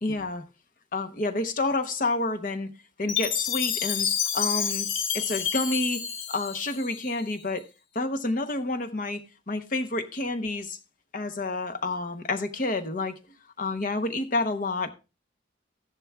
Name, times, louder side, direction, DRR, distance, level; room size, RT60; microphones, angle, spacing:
voice 1, 0.0-0.4 0.9-2.7 3.0-4.1 4.3-4.9 5.1-6.0 6.3-7.6 7.9-10.8 11.1-13.1 13.6-14.9, left 2 dB, 45° left, 0.9 m, -29 dB
Chime, 3.1-7.3, left 8 dB, 80° left, 1.1 m, -29 dB
13.5 x 10.5 x 2.3 m
head